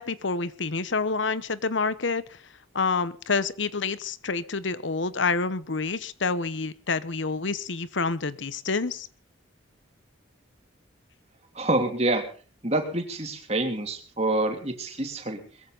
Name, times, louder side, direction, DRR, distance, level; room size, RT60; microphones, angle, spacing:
voice 1, 0.0-2.2 2.7-9.1, left 4 dB, 70° left, 16 dB, 1.0 m, -28 dB
voice 2, 11.5-12.2 12.6-15.4, right 2 dB, 30° right, 5 dB, 3.0 m, -27 dB
21.5 x 15.0 x 4.0 m, 0.39 s
head